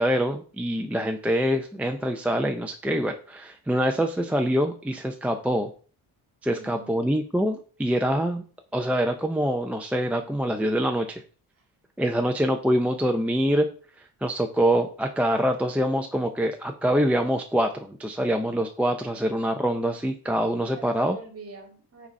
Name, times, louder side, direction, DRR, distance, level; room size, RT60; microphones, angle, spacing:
voice 1, 0.0-5.7 6.4-8.4 8.7-11.2 12.0-13.7 14.2-21.2, equal, 5° right, 4 dB, 0.6 m, -25 dB
voice 2, 6.5-7.0 12.1-12.3 20.7-22.1, right 4 dB, 35° right, 4 dB, 2.3 m, -45 dB
5.9 x 4.2 x 5.3 m, 0.40 s
cardioid pair, 115°, 40 cm